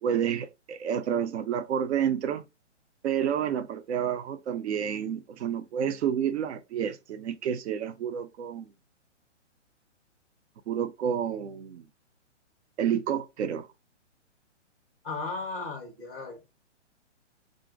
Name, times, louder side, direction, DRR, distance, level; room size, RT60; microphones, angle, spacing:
voice 1, 0.0-2.4 3.0-8.7 10.7-11.9 12.8-13.7, right 8 dB, 65° right, 0.6 m, -29 dB
voice 2, 15.0-16.4, left 3 dB, 5° right, 0.5 m, -35 dB
2.5 x 2.0 x 3.7 m
hypercardioid pair, 155°, 36 cm